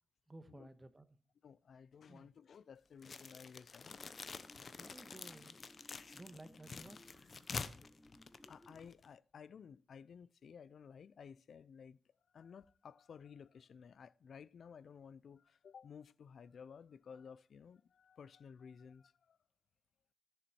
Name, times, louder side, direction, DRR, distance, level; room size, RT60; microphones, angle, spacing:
voice 1, 0.3-1.1 2.1-2.3 4.8-5.6 6.1-7.2, right 2 dB, 25° right, 1.3 m, -55 dB
voice 2, 1.4-4.0 8.5-12.0 12.3-19.4, left 6 dB, 80° left, 0.4 m, -55 dB
sound 1, 3.0-9.1, left 4 dB, 55° left, 0.8 m, -48 dB
sound 2, 3.9-8.9, equal, ahead, 0.7 m, -63 dB
14.0 x 7.1 x 4.4 m
cardioid pair, 85°, 0 cm